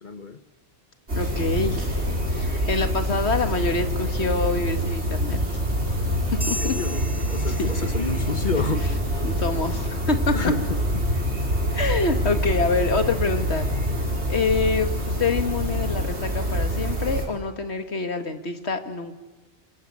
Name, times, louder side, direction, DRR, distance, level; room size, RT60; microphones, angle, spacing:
voice 1, 0.0-0.4 6.3-8.8 10.3-11.0, left 3 dB, 45° left, 10 dB, 1.5 m, -30 dB
sound 1, 1.1-17.2, equal, 85° right, 5.1 m, -26 dB
voice 2, 1.2-1.8 2.3-5.6 6.5-6.8 7.5-7.7 9.2-10.5 11.7-13.7 14.3-14.9 15.2-19.1, left 3 dB, 80° left, 7 dB, 2.1 m, -26 dB
sound 2, 6.4-8.3, equal, 20° right, 1.3 m, -36 dB
29.0 x 20.5 x 8.7 m, 1.2 s
omnidirectional pair, 1.1 m